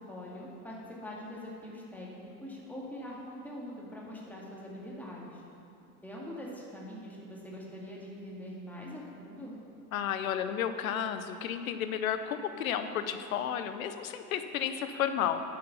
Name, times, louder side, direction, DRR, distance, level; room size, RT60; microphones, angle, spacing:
voice 1, 0.1-5.4 6.0-9.5, left 1 dB, 5° left, -5 dB, 2.2 m, -43 dB
voice 2, 9.9-15.5, left 9 dB, 60° left, 9 dB, 0.8 m, -32 dB
9.1 x 6.8 x 6.8 m, 2.6 s
figure-of-eight pair, 85°, 48 cm